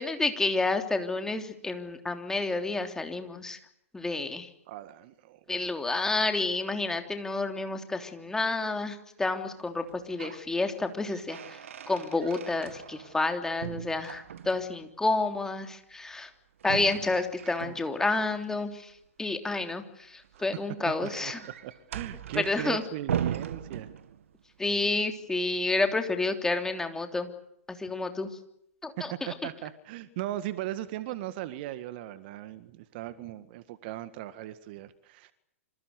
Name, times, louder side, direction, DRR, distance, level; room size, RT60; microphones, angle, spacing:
voice 1, 0.0-3.6 3.9-4.5 5.5-11.6 11.9-16.3 16.6-18.9 19.2-21.4 22.3-22.8 24.6-27.3 27.7-28.3 28.8-29.1, left 3 dB, 5° left, 6 dB, 3.2 m, -29 dB
voice 2, 4.7-5.7 20.3-20.4 20.9-23.9 29.0-35.3, right 14 dB, 45° right, 13 dB, 1.9 m, -38 dB
sound 1, 9.8-10.5 10.8-13.3 13.6-14.8 16.6-18.2 20.2-24.4, right 9 dB, 65° right, 1.9 m, -38 dB
27.5 x 26.5 x 6.7 m, 0.76 s
figure-of-eight pair, 110°, 8 cm